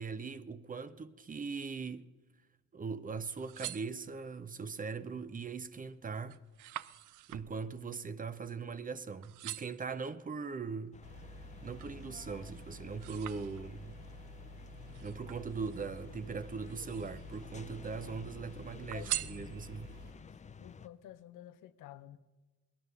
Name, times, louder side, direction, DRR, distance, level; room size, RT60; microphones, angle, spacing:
voice 1, 0.0-2.1 2.7-6.4 7.3-11.0 11.6-14.0 15.0-19.9, right 5 dB, 30° right, 0.6 m, -40 dB
sound 1, 3.3-4.5 5.1-5.5 5.8-8.9 9.2-9.9 10.5-12.0 12.4-14.0 14.9-16.0 16.6-17.4 17.7-18.4 18.9-20.0 20.5-20.6, right 15 dB, 85° right, 0.5 m, -44 dB
sound 2, 10.9-20.9, left 6 dB, 25° left, 0.5 m, -53 dB
sound 3, 11.0-20.1, equal, 70° right, 4.2 m, -51 dB
voice 2, 18.9-19.6 20.2-22.2, left 12 dB, 85° left, 0.7 m, -52 dB
18.5 x 11.0 x 6.7 m
cardioid pair, 90°, 30 cm